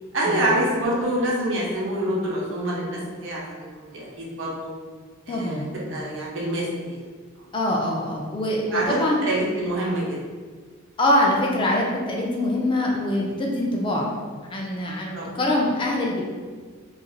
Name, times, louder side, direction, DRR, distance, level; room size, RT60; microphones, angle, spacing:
voice 1, 0.1-4.7 5.3-7.0 8.7-10.2 15.1-15.3, right 1 dB, 65° right, -4 dB, 0.7 m, -26 dB
voice 2, 5.3-5.7 7.5-9.2 11.0-14.2 14.5-16.2, left 1 dB, 25° left, -1 dB, 0.3 m, -24 dB
3.1 x 2.4 x 2.3 m, 1.5 s
head